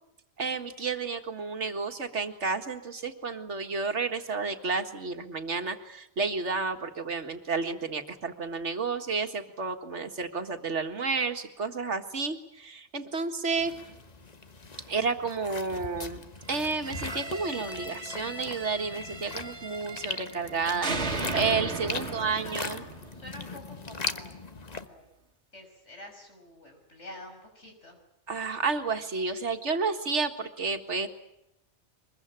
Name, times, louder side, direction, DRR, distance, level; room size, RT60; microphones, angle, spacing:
voice 1, 0.4-13.7 14.9-16.2 16.5-22.8 28.3-31.1, right 4 dB, 90° right, 6 dB, 2.2 m, -31 dB
voice 2, 13.6-14.0 22.0-24.3 24.7-25.0 25.5-28.0, left 1 dB, 90° left, 3 dB, 6.5 m, -48 dB
sound 1, 13.6-24.9, left 4 dB, 35° left, 1.3 m, -40 dB
sound 2, 16.7-20.5 20.8-23.8, right 3 dB, 70° right, 2.1 m, -37 dB
23.5 x 22.0 x 9.1 m, 0.82 s
omnidirectional pair, 1.2 m